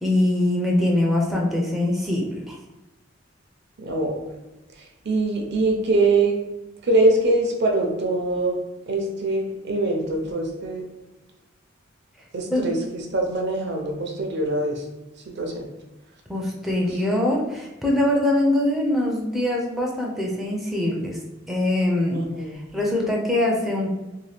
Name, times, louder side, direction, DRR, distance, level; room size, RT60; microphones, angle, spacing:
voice 1, 0.0-2.6 12.5-12.7 16.3-21.2 21.5-22.2 22.5-23.9, left 1 dB, ahead, -2 dB, 0.4 m, -23 dB
voice 2, 3.8-4.2 4.8-6.4 6.8-8.6 8.9-10.9 12.3-14.8 15.3-15.7 22.1-22.6, right 2 dB, 60° right, 2 dB, 0.5 m, -23 dB
2.7 x 2.2 x 3.2 m, 1.0 s
head